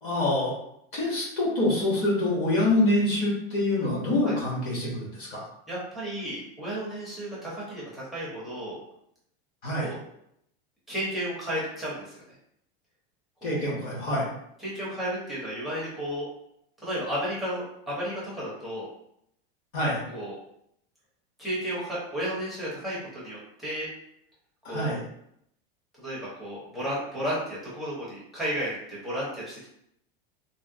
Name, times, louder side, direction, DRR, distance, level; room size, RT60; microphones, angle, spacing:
voice 1, 0.0-0.5 0.9-5.4 9.6-9.9 13.4-14.3 19.7-20.0 24.6-25.0, left 1 dB, 30° left, -4 dB, 0.9 m, -26 dB
voice 2, 5.7-8.8 9.8-10.0 10.9-12.1 13.4-13.6 14.6-16.3 16.8-18.9 20.1-20.3 21.4-23.9 24.7-24.9 26.0-29.7, equal, ahead, -9 dB, 0.5 m, -33 dB
3.5 x 2.0 x 2.5 m, 0.74 s
supercardioid pair, 175°, 29 cm